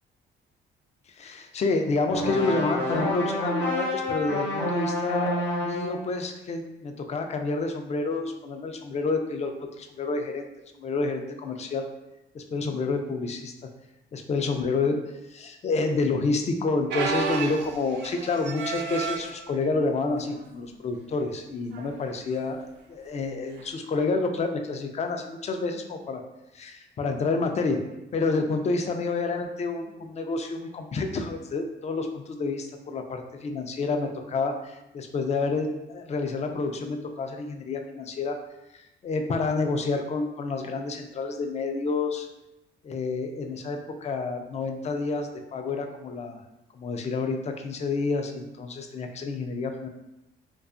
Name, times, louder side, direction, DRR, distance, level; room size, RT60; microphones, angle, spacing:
voice 1, 1.2-10.5 10.8-11.9 12.3-13.5 14.1-15.0 15.3-26.2 26.5-27.8 28.1-38.4 39.0-42.3 42.8-46.4 46.7-49.9, left 3 dB, 35° left, 5 dB, 0.3 m, -29 dB
sound 1, 2.1-6.0, left 1 dB, 60° left, 0.8 m, -28 dB
sound 2, 16.9-19.4 20.1-20.4 20.7-20.8 21.7-22.0 23.6-23.7, right 5 dB, 65° right, 0.4 m, -31 dB
2.6 x 2.3 x 2.4 m, 0.92 s
cardioid pair, 90°, 20 cm